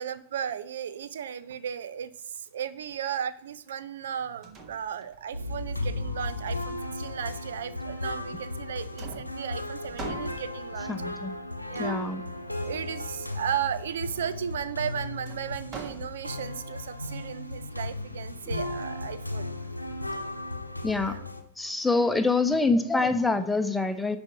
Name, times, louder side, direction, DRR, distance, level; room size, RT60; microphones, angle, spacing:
voice 1, 0.0-10.9 11.7-12.0 12.6-19.5 21.0-21.2, right 9 dB, 60° right, 16 dB, 0.4 m, -35 dB
sound 1, 4.0-4.1 4.4-5.5 6.3-7.3 8.2-8.7 9.0-10.9 12.6-13.1 15.3-16.6, right 3 dB, 30° right, 1.5 m, -43 dB
sound 2, 5.3-21.4, left 2 dB, 90° left, 0.9 m, -35 dB
voice 2, 10.9-11.4 11.8-12.2 18.5-18.6 20.8-21.1 21.6-24.2, left 3 dB, 5° left, 8 dB, 0.9 m, -25 dB
10.5 x 4.4 x 5.7 m, 0.66 s
figure-of-eight pair, 90°, 0 cm